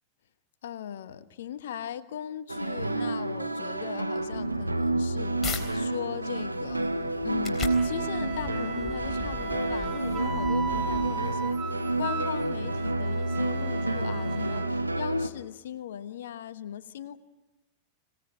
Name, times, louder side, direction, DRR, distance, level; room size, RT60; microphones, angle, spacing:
voice 1, 0.6-6.9 7.2-17.2, left 10 dB, 60° left, 14 dB, 1.1 m, -38 dB
sound 1, 2.5-15.3, right 2 dB, 85° right, 1.1 m, -29 dB
sound 2, 4.7-5.6 6.2-11.4, left 4 dB, 20° left, 3.9 m, -40 dB
Wind instrument woodwind instrument, 7.6-14.7, right 6 dB, 25° right, 1.8 m, -38 dB
26.0 x 18.0 x 9.2 m, 1.1 s
figure-of-eight pair, 90°, 0 cm